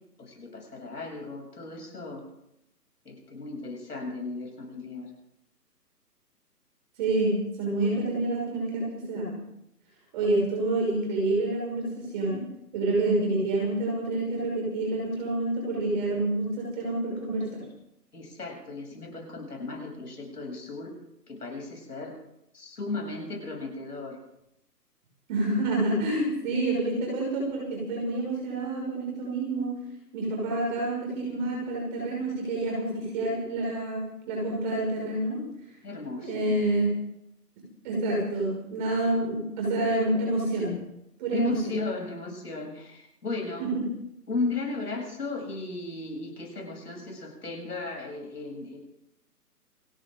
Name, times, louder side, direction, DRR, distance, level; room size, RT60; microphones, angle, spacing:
voice 1, 0.2-2.2 3.0-5.1 18.1-20.9 21.3-22.2 22.5-24.2 35.8-36.6 41.3-43.7 44.3-48.8, left 3 dB, 70° left, 1 dB, 7.7 m, -35 dB
voice 2, 7.0-9.4 10.1-12.4 12.7-17.6 25.3-29.7 30.1-35.4 36.2-36.9 37.8-40.8 41.2-41.6 43.6-43.8, right 2 dB, 30° right, -2 dB, 6.1 m, -28 dB
29.0 x 12.0 x 3.9 m, 0.83 s
figure-of-eight pair, 145°, 48 cm